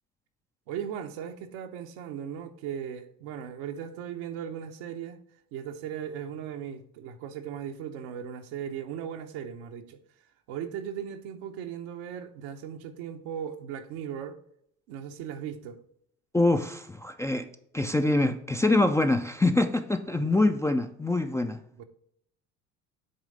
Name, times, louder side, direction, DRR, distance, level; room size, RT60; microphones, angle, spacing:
voice 1, 0.7-5.2 5.5-10.0 10.5-14.4 14.9-15.8 20.1-20.5 21.8-21.9, right 8 dB, 70° right, 0.9 m, -37 dB
voice 2, 16.3-17.5 17.7-21.6, left 2 dB, 10° left, 0.4 m, -25 dB
8.1 x 3.2 x 5.2 m
hypercardioid pair, 70°, 39 cm